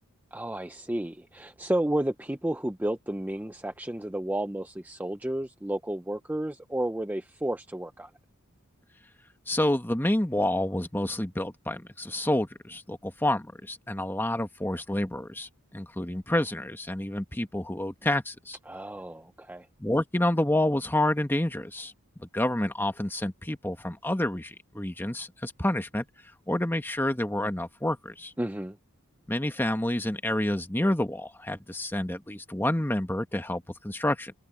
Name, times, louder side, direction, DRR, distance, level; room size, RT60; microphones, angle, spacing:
voice 1, 0.3-8.1 18.7-19.7 28.4-28.8, right 1 dB, 10° right, 0.6 m, -32 dB
voice 2, 9.5-18.6 19.8-21.9 22.2-26.0 26.5-28.3 29.3-34.3, left 1 dB, 10° left, 1.4 m, -28 dB
head